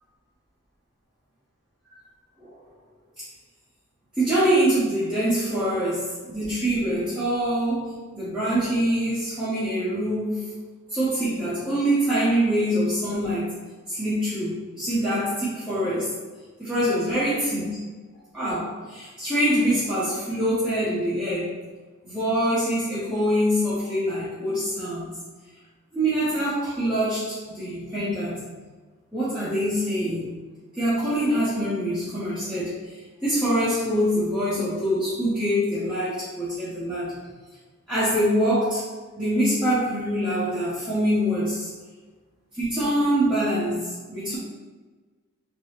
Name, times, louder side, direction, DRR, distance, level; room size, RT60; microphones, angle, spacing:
voice 1, 4.2-10.4 10.9-13.5 13.9-16.1 16.6-17.7 18.3-21.5 22.0-25.1 25.9-28.4 29.1-30.3 30.8-32.9 33.2-37.1 37.9-38.8 39.2-41.7 42.5-44.4, equal, 5° right, -13 dB, 1.1 m, -24 dB
3.9 x 3.7 x 3.1 m, 1.3 s
head